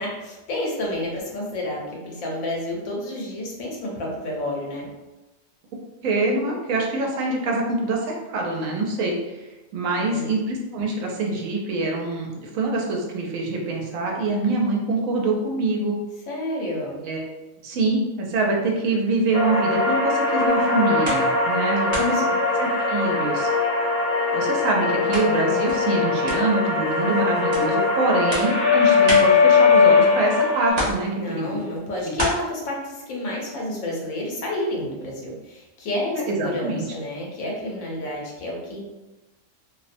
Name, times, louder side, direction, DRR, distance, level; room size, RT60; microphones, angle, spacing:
voice 1, 0.0-4.9 9.9-10.3 16.3-17.0 21.7-22.4 31.1-38.8, left 1 dB, 90° left, -2 dB, 1.1 m, -30 dB
voice 2, 6.0-9.4 9.7-16.0 17.0-17.3 17.6-22.2 22.6-23.5 24.3-31.6 32.0-32.1 36.3-36.8, right 2 dB, 80° right, -1 dB, 1.0 m, -25 dB
sound 1, 19.3-30.7, left 4 dB, 40° left, 0.7 m, -20 dB
sound 2, 20.5-21.6 21.9-23.5 23.8-30.3 30.7-32.3, equal, 45° right, 0.6 m, -32 dB
2.6 x 2.1 x 2.5 m, 1.1 s
omnidirectional pair, 1.4 m